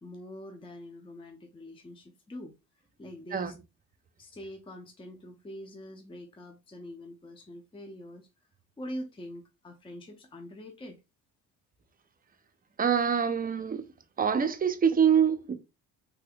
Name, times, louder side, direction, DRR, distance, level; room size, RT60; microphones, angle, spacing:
voice 1, 0.0-2.6 3.0-3.5 4.2-8.3 8.8-11.0, equal, 15° left, 0.6 m, -44 dB
voice 2, 12.8-13.8 14.2-15.5, right 7 dB, 25° right, 0.6 m, -25 dB
3.4 x 3.3 x 2.3 m
supercardioid pair, 80°, 32 cm